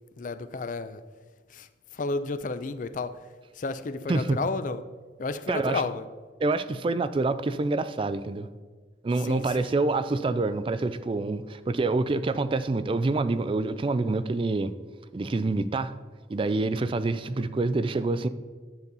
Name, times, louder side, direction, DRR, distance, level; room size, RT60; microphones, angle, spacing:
voice 1, 0.2-1.0 1.5-1.7 1.9-3.1 3.6-4.8 5.2-6.0 9.2-9.5, left 3 dB, 45° left, 0.5 m, -31 dB
voice 2, 4.1-4.4 5.5-5.8 6.4-8.5 9.0-14.7 15.1-15.9 16.3-18.3, right 3 dB, 30° right, 0.3 m, -26 dB
10.5 x 6.9 x 4.0 m
head